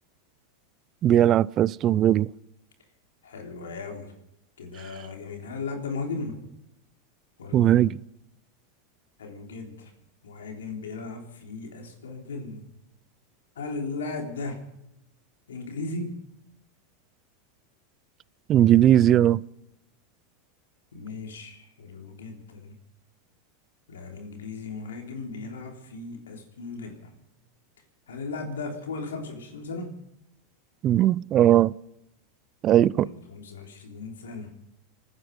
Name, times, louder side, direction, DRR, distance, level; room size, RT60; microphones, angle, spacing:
voice 1, 1.0-2.3 7.5-8.0 18.5-19.4 30.8-31.7 32.6-33.1, right 12 dB, 40° right, 22 dB, 0.5 m, -19 dB
voice 2, 3.2-4.1 4.6-6.4 7.4-7.8 9.2-9.9 10.2-12.6 13.5-14.6 15.5-16.2 20.9-22.7 23.9-27.1 28.1-29.9 32.9-34.5, left 3 dB, 90° left, 3 dB, 3.5 m, -36 dB
28.0 x 9.8 x 5.3 m, 0.83 s
hypercardioid pair, 105°, 0 cm